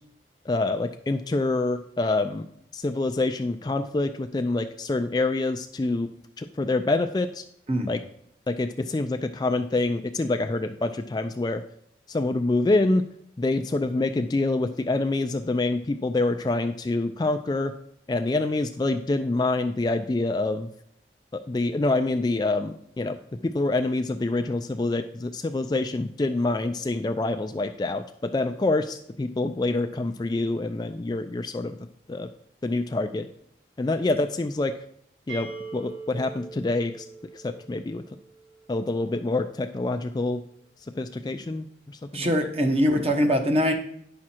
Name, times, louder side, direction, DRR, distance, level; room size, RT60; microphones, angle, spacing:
voice 1, 0.5-2.4 2.7-6.1 6.4-7.4 7.9-8.0 8.5-11.6 12.1-13.0 13.4-17.7 18.1-20.7 21.3-23.2 23.4-31.8 32.1-32.3 32.6-33.3 33.8-34.7 35.3-37.1 37.3-38.0 38.7-40.4 41.0-42.3, left 2 dB, 20° left, 7 dB, 0.3 m, -26 dB
sound 1, 35.3-39.0, right 4 dB, 85° right, 2.9 m, -42 dB
voice 2, 42.1-43.7, equal, 35° right, 4 dB, 1.1 m, -22 dB
9.5 x 6.1 x 4.4 m, 0.69 s
head